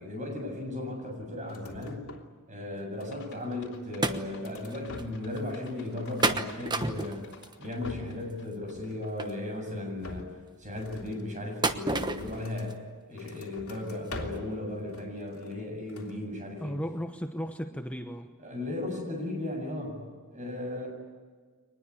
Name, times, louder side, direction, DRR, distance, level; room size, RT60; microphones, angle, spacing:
voice 1, 0.0-2.1 2.5-7.2 7.6-10.3 10.6-12.8 13.1-16.8 18.4-20.0 20.3-20.9, left 2 dB, 35° right, 7.7 m, -36 dB
sound 1, 1.4-2.4 2.7-3.5 3.9-5.4 5.7-7.2 7.6-8.3 8.6-9.5 10.0-12.8 13.1-14.6 14.9-15.6 15.9-16.2, left 2 dB, 80° left, 3.1 m, -46 dB
sound 2, 3.1-8.7 9.0-9.1, left 4 dB, 60° left, 4.7 m, -50 dB
sound 3, 4.0-4.2 4.7-4.8 5.0-5.1 6.2-7.5 9.2-9.3 11.6-12.4 12.7-12.8 13.4-13.5 14.0-14.1 14.3-14.4, right 2 dB, 20° right, 1.1 m, -29 dB
voice 2, 16.6-18.3, equal, 5° left, 1.0 m, -35 dB
24.0 x 20.0 x 9.8 m
head